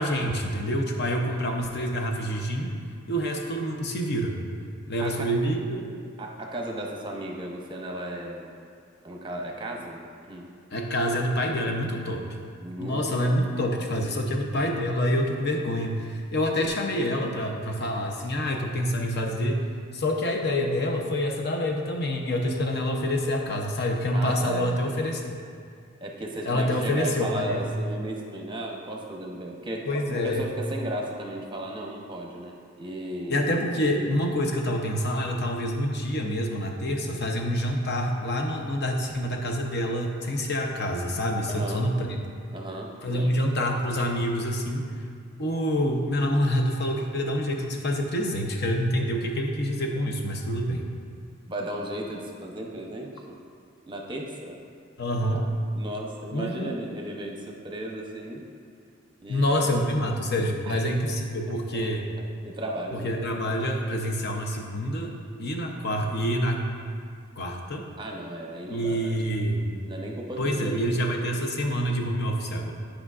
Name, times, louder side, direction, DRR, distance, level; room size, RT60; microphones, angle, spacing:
voice 1, 0.0-2.7 3.1-4.4 4.9-5.6 10.7-12.2 12.8-19.6 19.9-25.4 26.5-27.6 29.9-30.5 33.3-42.2 43.0-44.9 45.4-50.9 55.0-55.5 56.3-56.8 59.3-62.0 62.9-65.1 65.4-66.7 67.4-67.8 68.7-69.7 70.4-72.7, equal, 55° left, 2 dB, 0.7 m, -27 dB
voice 2, 5.0-5.3 6.2-8.5 9.0-10.0 10.3-10.5 12.6-13.1 24.1-24.9 26.0-29.9 30.2-33.5 41.5-41.9 42.5-43.3 51.4-53.4 53.9-54.6 55.3-55.5 55.7-58.4 59.2-59.7 60.6-60.8 61.4-62.0 62.4-63.1 68.0-69.1 69.9-70.8 71.1-71.2, right 1 dB, 25° right, 0 dB, 0.7 m, -35 dB
10.5 x 5.0 x 2.5 m, 2.2 s
head